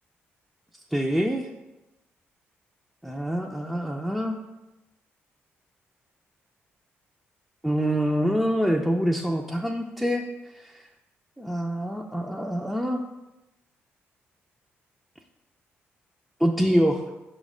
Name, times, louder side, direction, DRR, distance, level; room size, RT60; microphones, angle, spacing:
voice 1, 0.9-1.5 3.0-4.4 7.6-10.2 10.5-10.9 11.4-13.0 16.4-17.0, equal, 5° right, 0 dB, 0.5 m, -25 dB
6.1 x 3.2 x 5.0 m, 0.99 s
cardioid pair, 65°, 5 cm